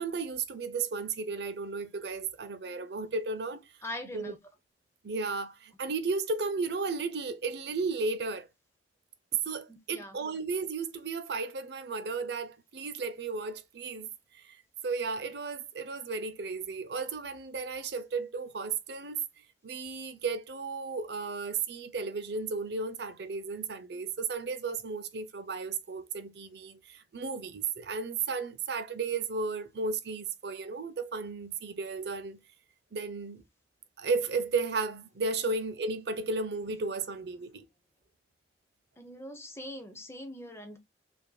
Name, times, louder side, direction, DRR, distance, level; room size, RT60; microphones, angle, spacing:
voice 1, 0.0-3.7 4.1-4.3 5.0-8.5 9.4-14.6 14.8-32.4 32.9-33.4 34.0-37.6, right 4 dB, 65° right, 0.6 m, -34 dB
voice 2, 3.8-4.4 9.7-10.2 39.0-40.8, left 1 dB, 15° left, 0.6 m, -42 dB
5.1 x 2.6 x 2.2 m
head